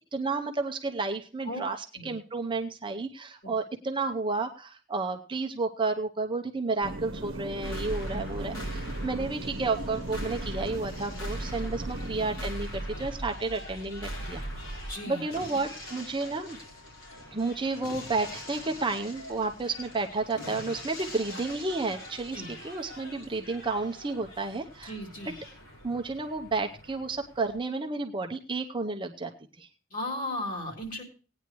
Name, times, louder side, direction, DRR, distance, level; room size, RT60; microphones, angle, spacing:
voice 1, 0.1-1.8 2.0-14.4 15.1-16.6 17.3-24.9 25.8-29.3 29.6-29.7, right 3 dB, 25° right, 4 dB, 0.7 m, -31 dB
sound 1, 6.8-12.5, right 2 dB, 75° right, 0.9 m, -39 dB
sound 2, 7.6-27.6, equal, 65° left, 4.0 m, -40 dB
voice 2, 14.9-15.3 15.5-15.6 22.3-22.5 24.8-25.3 29.9-31.0, left 1 dB, 40° left, 2 dB, 3.3 m, -36 dB
18.0 x 9.4 x 3.0 m, 0.36 s
head